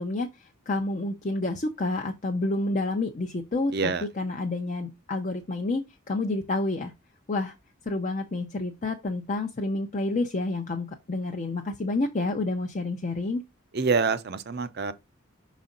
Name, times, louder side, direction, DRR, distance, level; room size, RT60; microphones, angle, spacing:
voice 1, 0.0-6.9 7.3-7.5 7.9-13.4, left 2 dB, 35° left, 0.6 m, -29 dB
voice 2, 3.7-4.0 13.7-14.9, right 4 dB, 50° right, 0.6 m, -26 dB
6.1 x 4.2 x 3.7 m
head